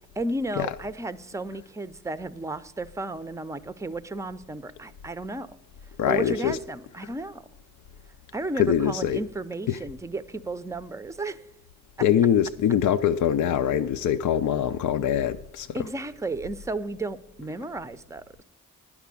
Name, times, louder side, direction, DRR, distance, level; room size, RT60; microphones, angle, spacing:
voice 1, 0.2-5.5 6.0-7.4 8.3-11.5 15.7-18.4, right 2 dB, 10° right, 0.6 m, -33 dB
voice 2, 6.0-6.6 8.6-9.2 9.7-9.8 12.0-15.7, left 9 dB, 60° left, 0.5 m, -23 dB
10.5 x 5.9 x 8.3 m
supercardioid pair, 45°, 34 cm